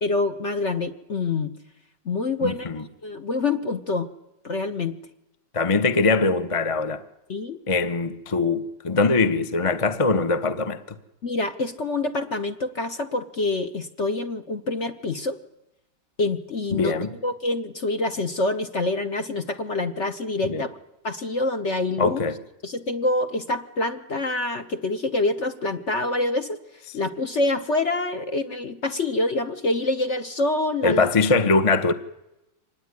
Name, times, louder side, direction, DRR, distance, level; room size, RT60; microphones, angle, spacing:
voice 1, 0.0-1.5 2.0-2.7 3.0-4.1 4.4-5.0 7.3-7.6 11.2-15.4 16.2-20.8 21.0-22.2 22.6-26.6 26.9-31.1, left 2 dB, 45° left, 1.1 m, -26 dB
voice 2, 2.4-2.8 5.5-7.0 7.7-10.8 16.7-17.2 20.4-20.6 22.0-22.4 30.8-31.9, left 3 dB, 25° left, 0.7 m, -22 dB
25.5 x 19.0 x 9.8 m
omnidirectional pair, 2.3 m